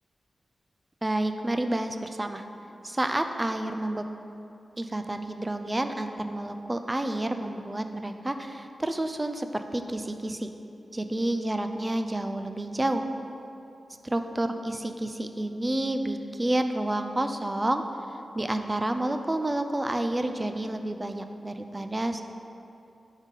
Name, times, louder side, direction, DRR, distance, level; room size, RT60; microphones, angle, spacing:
voice 1, 1.0-2.4 2.8-4.0 4.8-10.5 10.9-13.0 14.0-17.8 18.3-22.2, right 1 dB, 20° right, 7 dB, 0.4 m, -29 dB
9.8 x 4.1 x 5.4 m, 2.7 s
wide cardioid pair, 115°, 0 cm